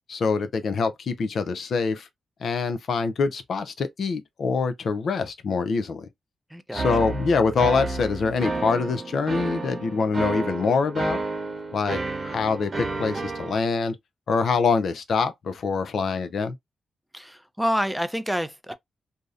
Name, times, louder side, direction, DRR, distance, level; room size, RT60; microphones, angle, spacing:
voice 1, 0.1-2.1 2.4-6.0 6.7-11.2 11.7-14.0 14.3-16.5, left 4 dB, 70° left, 0.4 m, -25 dB
voice 2, 6.5-6.8 17.1-18.7, equal, ahead, 0.4 m, -28 dB
sound 1, 6.7-13.6, right 3 dB, 40° right, 0.9 m, -31 dB
2.6 x 2.0 x 2.4 m
cardioid pair, 60°, 0 cm